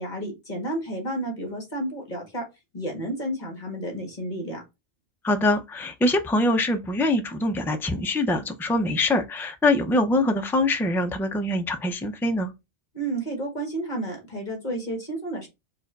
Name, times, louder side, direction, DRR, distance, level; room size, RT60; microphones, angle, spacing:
voice 1, 0.0-2.4 2.7-4.6 12.9-15.5, right 1 dB, 45° left, 1.8 m, -31 dB
voice 2, 5.2-12.5, left 2 dB, 5° left, 0.3 m, -24 dB
4.7 x 2.5 x 4.5 m
omnidirectional pair, 1.0 m